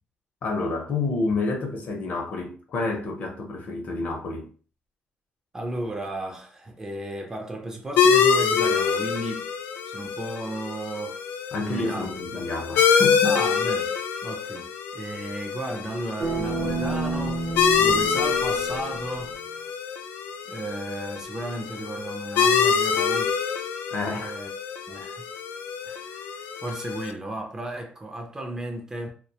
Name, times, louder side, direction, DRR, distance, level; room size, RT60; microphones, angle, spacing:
voice 1, 0.4-4.5 11.5-13.4 23.9-24.3, left 3 dB, 50° left, 0.6 m, -29 dB
voice 2, 5.5-9.5 9.9-11.2 11.6-12.1 13.2-13.9 14.2-19.7 20.5-23.4 24.2-24.5 24.9-25.3 25.8-29.1, right 1 dB, 15° right, 0.4 m, -34 dB
sound 1, 8.0-27.1, left 6 dB, 85° left, 0.3 m, -25 dB
sound 2, 16.2-19.2, right 2 dB, 45° right, 0.7 m, -30 dB
2.4 x 2.1 x 2.7 m
cardioid pair, 160°, 3 cm